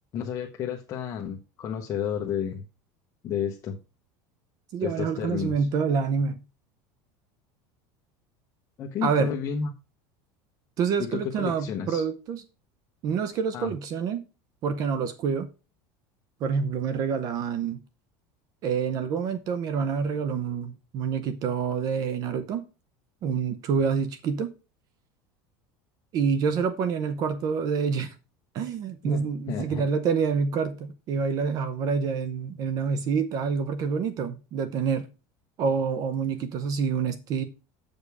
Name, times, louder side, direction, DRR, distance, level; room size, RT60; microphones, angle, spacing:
voice 1, 0.1-2.6 3.2-3.8 4.8-5.7 8.8-9.7 11.0-12.0 13.5-13.7 29.0-29.8, left 8 dB, 30° left, 0.9 m, -31 dB
voice 2, 4.7-6.4 9.0-9.3 10.8-12.4 13.0-14.2 14.6-15.5 16.4-17.8 18.6-22.7 23.2-24.5 26.1-28.1 28.5-35.1 35.6-37.4, right 6 dB, 40° right, 0.7 m, -27 dB
8.1 x 5.2 x 4.8 m
cardioid pair, 155°, 10 cm